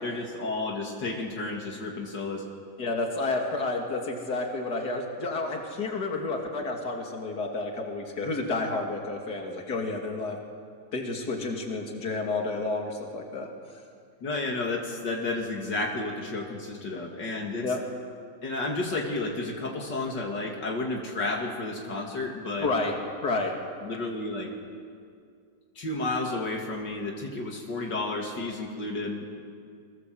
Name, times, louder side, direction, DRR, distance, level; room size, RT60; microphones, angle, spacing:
voice 1, 0.0-2.4 14.2-17.7 18.4-22.7 23.8-24.5 25.8-29.2, left 2 dB, 80° left, 0 dB, 3.0 m, -32 dB
voice 2, 2.8-10.4 10.9-13.5 17.6-17.8 22.6-22.9 23.2-23.6, left 3 dB, 65° left, 2 dB, 3.2 m, -30 dB
28.5 x 23.5 x 7.8 m, 2.3 s
omnidirectional pair, 1.9 m